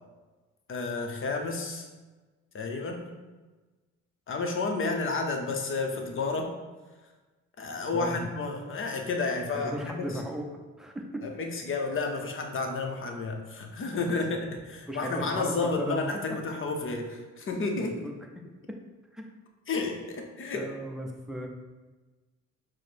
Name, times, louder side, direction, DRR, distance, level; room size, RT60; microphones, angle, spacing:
voice 1, 0.7-1.9 2.5-3.1 4.3-6.5 7.6-10.0 11.2-18.1 19.7-20.7, left 3 dB, 45° left, 3 dB, 0.7 m, -31 dB
voice 2, 9.5-10.5 10.8-11.2 14.0-14.1 14.9-16.0 17.8-18.1 19.1-19.3 20.5-21.5, equal, ahead, 1 dB, 0.5 m, -36 dB
4.7 x 2.1 x 4.3 m, 1.3 s
cardioid pair, 90°, 30 cm